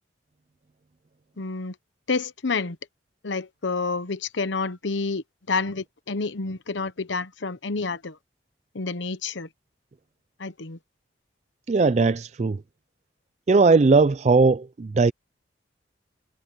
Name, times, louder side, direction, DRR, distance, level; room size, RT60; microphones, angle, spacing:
voice 1, 1.4-1.7 2.1-2.8 3.2-8.2 8.7-9.5 10.4-10.8, left 4 dB, 80° left, 0.9 m, -29 dB
voice 2, 11.7-12.6 13.5-15.1, right 4 dB, 35° right, 0.3 m, -19 dB
head